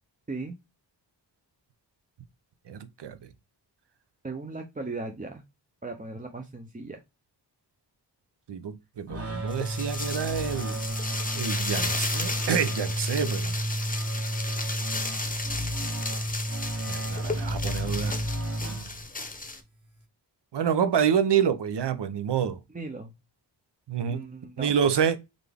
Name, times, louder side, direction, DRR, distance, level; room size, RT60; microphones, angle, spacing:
voice 1, 0.3-0.6 4.2-5.4 5.8-7.0 22.7-23.1 24.1-24.7, right 3 dB, 20° right, 0.5 m, -37 dB
voice 2, 2.7-3.2 8.5-10.8 11.3-13.5 16.9-18.1 20.5-22.6 23.9-24.2 24.6-25.2, right 8 dB, 75° right, 0.7 m, -27 dB
sound 1, 9.1-19.3, right 1 dB, 35° right, 1.2 m, -32 dB
sound 2, 9.5-19.6, left 3 dB, 20° left, 0.7 m, -34 dB
4.0 x 3.3 x 3.4 m
wide cardioid pair, 135°, 41 cm